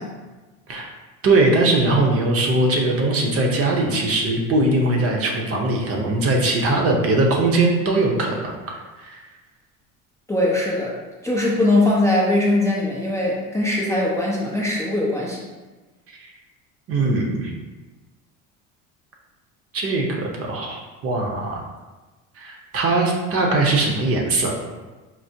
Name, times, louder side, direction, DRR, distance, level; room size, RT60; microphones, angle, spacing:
voice 1, 1.2-9.2 16.2-16.3 16.9-17.5 19.7-21.6 22.4-24.5, right 2 dB, 40° right, 0 dB, 0.7 m, -21 dB
voice 2, 10.3-10.9 11.2-15.5, left 1 dB, 10° left, -5 dB, 0.4 m, -21 dB
4.4 x 2.0 x 2.7 m, 1.2 s
supercardioid pair, 95°, 35 cm